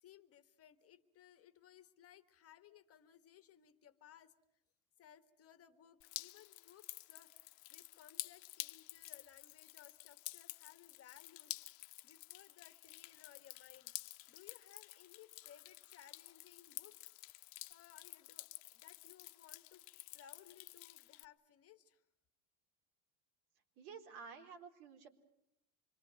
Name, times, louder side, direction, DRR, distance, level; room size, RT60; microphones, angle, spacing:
voice 1, 0.0-4.3 5.0-11.6 12.0-13.9 14.3-17.2 17.7-22.0, left 10 dB, 35° left, 10 dB, 1.4 m, -62 dB
Drip, 6.0-21.3, left 21 dB, 70° left, 1.0 m, -51 dB
voice 2, 23.8-25.1, right 6 dB, 85° right, 3 dB, 4.2 m, -52 dB
26.0 x 23.0 x 7.5 m, 0.79 s
cardioid pair, 145°, 43 cm